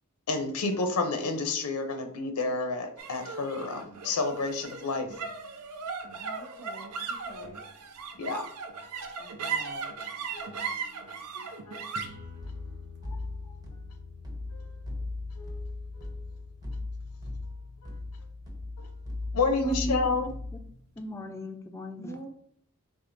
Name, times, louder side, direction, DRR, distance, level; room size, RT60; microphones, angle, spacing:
voice 1, 0.3-5.1 8.2-8.4 8.9-9.1 10.7-10.8 11.7-12.3 13.1-13.3 15.4-15.6 18.8-18.9 19.3-20.3, left 3 dB, 90° left, 6 dB, 0.6 m, -30 dB
sound 1, 3.0-19.5, right 5 dB, 85° right, 0.6 m, -39 dB
voice 2, 6.1-7.6 9.2-9.9 22.0-22.3, right 2 dB, 55° right, 0 dB, 1.0 m, -46 dB
sound 2, 12.2-20.7, left 2 dB, 15° right, 0.8 m, -38 dB
voice 3, 19.5-20.2 20.5-20.6 21.0-22.3, equal, 10° left, 6 dB, 0.4 m, -37 dB
4.8 x 3.6 x 2.6 m, 0.63 s
head